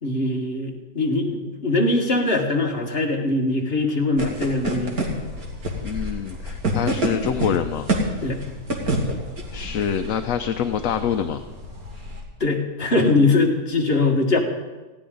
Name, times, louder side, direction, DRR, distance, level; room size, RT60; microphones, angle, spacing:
voice 1, 0.0-5.0 8.2-8.4 12.4-14.4, left 2 dB, 40° left, 0 dB, 2.1 m, -22 dB
sound 1, 4.2-12.2, right 1 dB, 75° right, 2.8 m, -28 dB
voice 2, 5.8-7.9 9.5-11.4, left 8 dB, 65° left, 7 dB, 1.0 m, -25 dB
19.5 x 15.5 x 3.9 m, 1.2 s
omnidirectional pair, 1.6 m